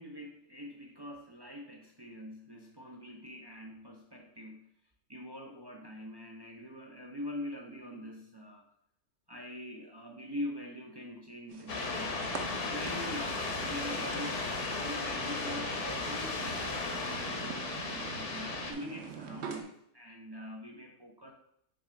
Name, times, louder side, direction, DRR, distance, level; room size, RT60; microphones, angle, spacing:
voice 1, 0.0-4.7 5.1-8.6 9.3-12.2 12.5-14.3 14.7-21.3, left 1 dB, 45° right, 1 dB, 0.3 m, -44 dB
sound 1, 11.5-19.6, right 6 dB, 60° right, 1.0 m, -45 dB
sound 2, 11.7-18.7, left 3 dB, 60° left, 1.3 m, -35 dB
6.1 x 3.3 x 5.0 m, 0.73 s
omnidirectional pair, 1.4 m